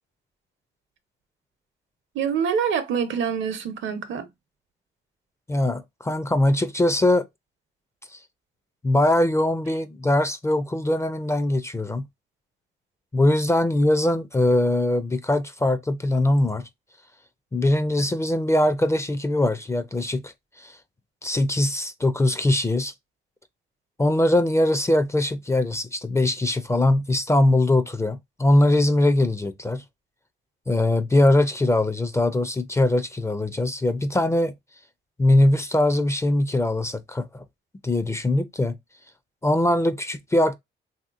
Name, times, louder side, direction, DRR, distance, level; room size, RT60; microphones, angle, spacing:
voice 1, 2.1-4.3, right 7 dB, 70° right, 0.8 m, -25 dB
voice 2, 5.5-7.3 8.1-8.2 8.8-12.1 13.1-16.7 17.5-20.8 21.2-22.9 24.0-29.8 30.7-34.5 35.2-37.4 37.8-38.8 39.4-40.6, left 1 dB, 15° left, 0.4 m, -21 dB
3.2 x 2.7 x 2.4 m
cardioid pair, 90°, 20 cm